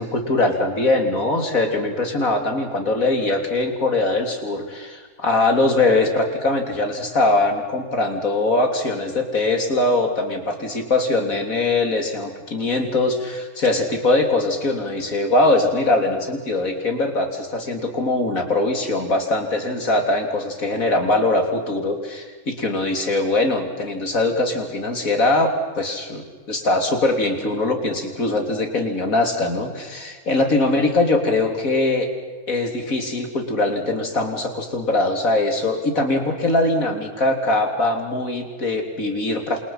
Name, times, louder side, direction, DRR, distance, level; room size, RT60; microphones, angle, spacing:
voice 1, 0.0-32.1 32.5-39.6, left 2 dB, 65° left, 4 dB, 3.7 m, -21 dB
28.5 x 28.0 x 5.8 m, 1.4 s
omnidirectional pair, 1.6 m